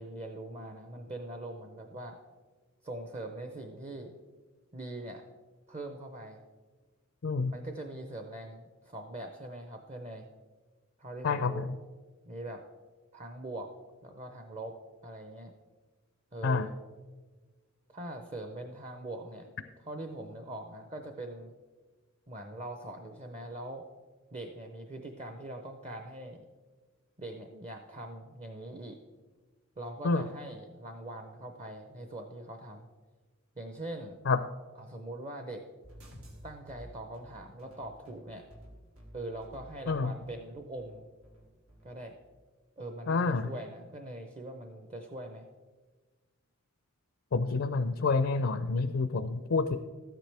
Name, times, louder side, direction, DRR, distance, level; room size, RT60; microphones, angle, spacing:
voice 1, 0.0-2.2 2.8-4.1 4.7-5.2 5.7-6.4 7.5-10.3 11.0-11.7 12.2-12.6 13.1-13.7 14.0-14.8 15.0-15.5 16.3-16.7 17.9-19.5 19.9-21.5 22.3-23.9 24.3-26.5 27.2-29.0 29.8-32.9 33.6-34.2 34.8-35.7 36.4-38.5 39.1-41.1 41.8-42.2 42.8-45.5, right 1 dB, 30° right, 5 dB, 0.6 m, -42 dB
voice 2, 7.2-7.5 11.2-11.8 16.4-16.7 30.0-30.3 34.3-34.4 39.9-40.1 43.1-43.5 47.3-49.8, left 4 dB, 65° left, 10 dB, 0.4 m, -28 dB
sound 1, 35.8-41.9, equal, 85° right, 2.2 m, -52 dB
13.0 x 9.2 x 3.4 m, 1.3 s
head